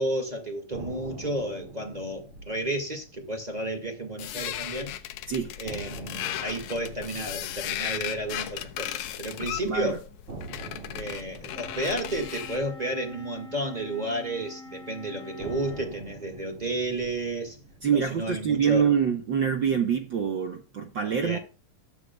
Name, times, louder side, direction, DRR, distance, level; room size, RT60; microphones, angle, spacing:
voice 1, 0.0-5.0 5.6-10.0 10.9-17.6 17.9-18.9 21.1-21.4, right 1 dB, 20° right, 1.4 m, -32 dB
sound 1, 0.7-4.8 5.1-5.2 5.6-9.7 10.3-14.6 15.4-19.8, right 2 dB, 40° right, 3.3 m, -46 dB
sound 2, 4.2-12.7, left 12 dB, 75° left, 2.0 m, -36 dB
voice 2, 9.6-10.0 17.8-21.4, right 7 dB, 85° right, 1.0 m, -25 dB
Wind instrument woodwind instrument, 11.5-15.9, left 2 dB, ahead, 1.9 m, -45 dB
19.0 x 7.7 x 2.3 m
omnidirectional pair, 3.7 m